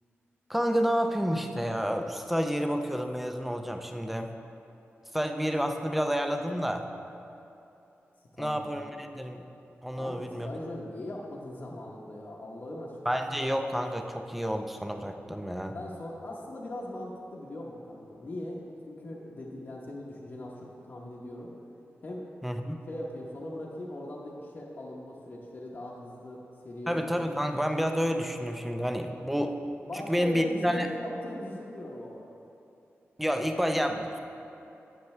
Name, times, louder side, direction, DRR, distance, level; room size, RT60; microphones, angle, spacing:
voice 1, 0.5-4.3 5.1-6.9 8.4-9.4 9.8-10.5 13.1-15.8 22.4-22.8 26.9-29.5 30.1-30.9 33.2-34.2, equal, 5° right, 5 dB, 0.5 m, -29 dB
voice 2, 8.3-8.8 9.9-13.2 15.7-21.5 22.0-22.3 22.9-27.0 29.8-32.3, left 1 dB, 45° left, -3 dB, 0.9 m, -40 dB
12.0 x 7.9 x 3.2 m, 2.8 s
wide cardioid pair, 140°, 5 cm